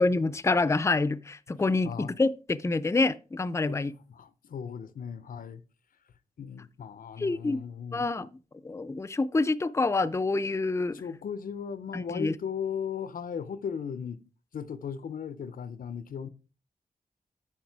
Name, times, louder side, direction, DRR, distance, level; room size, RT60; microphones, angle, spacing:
voice 1, 0.0-3.9 7.2-7.6 7.9-8.3 8.6-11.0 11.9-12.3, left 3 dB, 20° left, 0.5 m, -27 dB
voice 2, 4.1-5.6 6.4-8.0 10.9-14.2 14.5-16.3, left 7 dB, 85° left, 0.6 m, -37 dB
8.8 x 5.7 x 4.7 m
wide cardioid pair, 90°, 14 cm